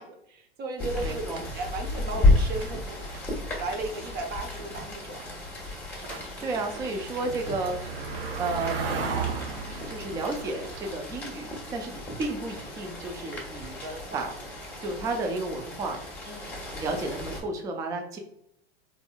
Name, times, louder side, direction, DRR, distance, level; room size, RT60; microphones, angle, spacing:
voice 1, 0.0-1.2 1.5-3.1 3.5-5.2 13.8-14.2 16.2-16.6, right 2 dB, 30° right, 4 dB, 0.7 m, -35 dB
Rain, 0.8-17.4, left 2 dB, 5° left, 1.2 m, -32 dB
sound 1, 0.9-3.4 3.6-11.0, right 5 dB, 65° right, 0.8 m, -36 dB
voice 2, 1.0-1.4 6.4-7.9 8.4-9.3 9.9-13.8 14.1-14.3 14.8-16.0 16.8-18.2, right 3 dB, 10° right, 4 dB, 0.3 m, -32 dB
3.6 x 3.1 x 2.2 m, 0.77 s
hypercardioid pair, 105°, 32 cm